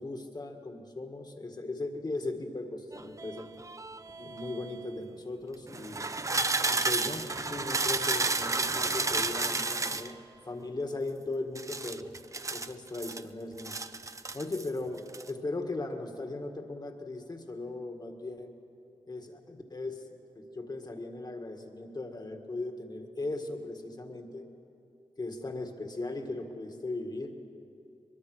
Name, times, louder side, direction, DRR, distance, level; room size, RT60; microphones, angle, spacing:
voice 1, 0.0-3.5 4.2-6.1 6.7-10.2 10.5-12.1 12.5-13.8 14.3-15.0 15.3-18.6 19.1-20.0 20.4-24.4 25.2-27.4, left 2 dB, 40° left, 5 dB, 1.9 m, -38 dB
sound 1, 2.9-4.8 5.7-10.1 11.6-13.2 13.6-14.7 15.0-15.3, right 3 dB, 30° right, 0.6 m, -32 dB
23.0 x 22.0 x 6.3 m, 2.6 s
wide cardioid pair, 115°, 11 cm